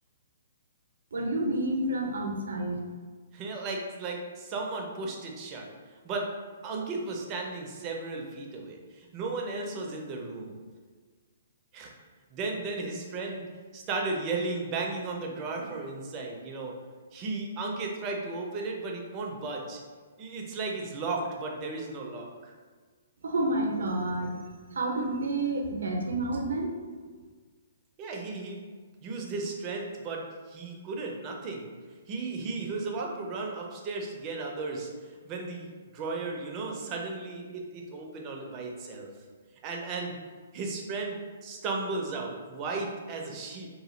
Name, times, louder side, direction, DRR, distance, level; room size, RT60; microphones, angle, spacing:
voice 1, 1.1-2.8 23.2-24.3 24.7-26.7, right 2 dB, 85° right, 1 dB, 0.6 m, -29 dB
voice 2, 3.3-5.7 6.0-6.3 6.6-10.6 11.7-11.9 12.3-16.7 17.1-19.8 20.2-22.5 28.0-28.6 29.0-31.7 32.1-34.9 35.2-39.1 39.6-40.1 40.5-43.7, right 3 dB, 25° right, 0 dB, 0.4 m, -35 dB
2.8 x 2.1 x 3.1 m, 1.5 s
hypercardioid pair, 155°, 0 cm